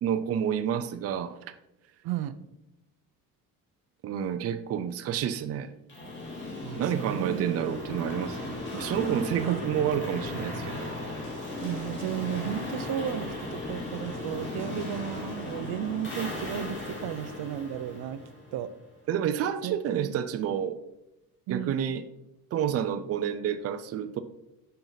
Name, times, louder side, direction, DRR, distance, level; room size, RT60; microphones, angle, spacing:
voice 1, 0.0-1.5 4.0-5.7 6.8-10.9 19.1-20.8 21.5-22.0 22.5-24.2, right 9 dB, 40° right, 10 dB, 0.5 m, -29 dB
voice 2, 2.0-2.4 6.6-8.1 9.4-9.6 11.6-18.2 18.5-18.7 19.6-20.1 21.5-21.8, right 10 dB, 80° right, 12 dB, 0.7 m, -34 dB
sound 1, 5.9-18.8, left 2 dB, 30° left, 3.0 m, -36 dB
9.2 x 5.7 x 4.0 m, 0.91 s
cardioid pair, 165°, 37 cm